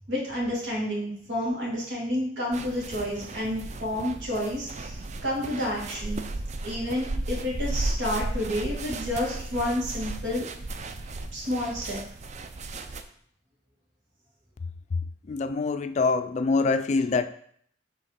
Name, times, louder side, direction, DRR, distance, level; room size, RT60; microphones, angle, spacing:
voice 1, 0.1-6.2 6.6-10.5 11.3-12.0, left 1 dB, 85° right, -3 dB, 2.2 m, -30 dB
sound 1, 2.5-13.0, right 2 dB, 40° right, 0.4 m, -35 dB
voice 2, 14.9-17.2, left 4 dB, 40° left, 11 dB, 0.3 m, -25 dB
5.1 x 3.5 x 5.6 m, 0.63 s
head